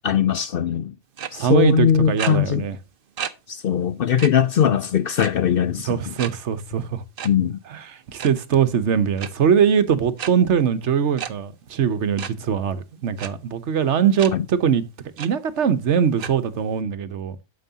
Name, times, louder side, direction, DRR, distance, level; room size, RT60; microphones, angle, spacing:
voice 1, 0.0-0.9 1.3-2.6 3.5-6.1 7.2-7.6, left 9 dB, 60° left, 0.7 m, -20 dB
sound 1, 1.2-1.3 2.2-2.3 3.2-3.3 3.7-3.8 4.2-4.3 5.2-5.5 6.2-6.3 7.2-7.3 8.0-8.3 9.2-9.3 10.2-10.3 11.2-11.3 12.2-12.3 13.2-13.3 14.2-14.3 14.8-14.9 15.2-15.3 16.2-16.3, right 8 dB, 50° right, 0.9 m, -30 dB
voice 2, 1.3-2.8 5.8-7.0 7.7-14.8 15.2-17.4, right 7 dB, 65° right, 1.2 m, -21 dB
9.1 x 7.6 x 2.8 m
omnidirectional pair, 1.3 m